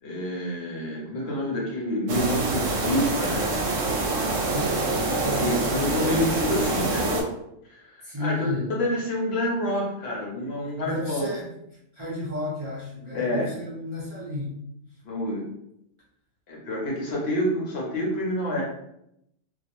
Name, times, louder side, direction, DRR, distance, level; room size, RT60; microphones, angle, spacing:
voice 1, 0.0-3.8 5.2-7.3 7.7-11.3 13.1-13.5 15.0-15.5 16.5-18.6, left 1 dB, 60° left, -3 dB, 0.8 m, -28 dB
sound 1, 2.1-7.2, right 3 dB, 75° right, 0.9 m, -26 dB
voice 2, 4.4-5.9 8.0-8.7 10.5-11.5 11.9-14.6, left 1 dB, 30° right, -8 dB, 0.6 m, -33 dB
2.4 x 2.0 x 2.9 m, 0.77 s
omnidirectional pair, 1.3 m